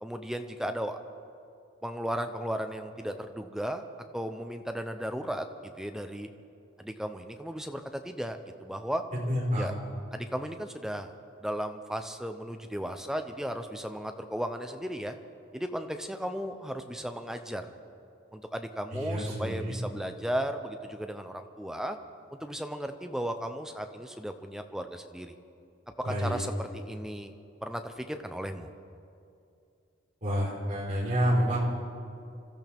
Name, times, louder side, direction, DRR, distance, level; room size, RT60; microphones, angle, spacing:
voice 1, 0.0-1.0 1.8-3.8 4.1-6.3 6.8-9.0 9.6-9.7 10.1-11.1 11.4-15.2 15.5-17.7 18.3-22.0 22.3-25.3 26.0-27.3 27.6-28.7, equal, ahead, 6 dB, 0.6 m, -35 dB
voice 2, 9.3-9.7 18.9-19.7 26.0-26.4 30.2-31.6, equal, 35° right, -5 dB, 4.6 m, -28 dB
26.0 x 14.0 x 3.6 m, 2.5 s
head